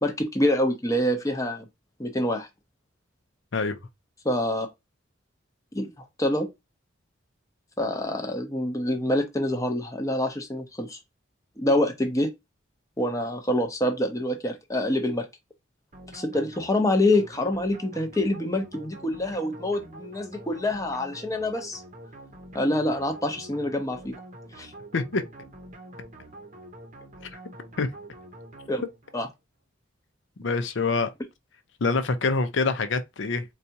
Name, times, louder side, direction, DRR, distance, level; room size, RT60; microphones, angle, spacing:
voice 1, 0.0-1.7 2.0-2.5 4.2-4.7 5.7-6.5 7.8-11.0 11.6-12.3 13.0-15.3 16.1-21.8 22.5-24.1 24.6-24.7 28.7-28.8 29.1-29.3, left 1 dB, 15° left, 0.7 m, -26 dB
sound 1, 15.9-29.2, right 1 dB, 40° right, 0.8 m, -46 dB
voice 2, 24.9-25.2 27.8-27.9 30.4-31.1 31.8-33.4, left 3 dB, 70° left, 0.6 m, -25 dB
4.1 x 2.3 x 2.7 m
head